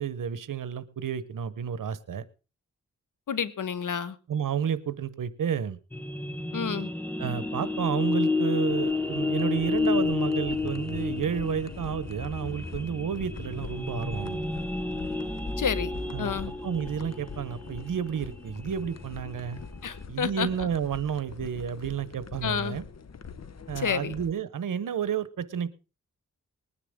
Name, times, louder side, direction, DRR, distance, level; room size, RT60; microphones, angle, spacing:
voice 1, 0.0-2.2 4.3-5.8 7.2-14.4 16.1-16.3 16.6-19.6 20.1-22.8 23.7-25.7, right 8 dB, 90° right, 15 dB, 1.0 m, -31 dB
voice 2, 3.3-4.2 6.5-6.9 15.6-15.9 16.2-16.5 19.8-20.7 22.4-22.8 23.8-24.1, left 7 dB, 75° left, 15 dB, 1.1 m, -30 dB
sound 1, 5.9-20.0, left 3 dB, 5° left, 1.0 m, -31 dB
sound 2, 8.5-24.3, left 5 dB, 55° left, 1.1 m, -44 dB
20.0 x 9.9 x 3.7 m, 0.33 s
cardioid pair, 70°, 32 cm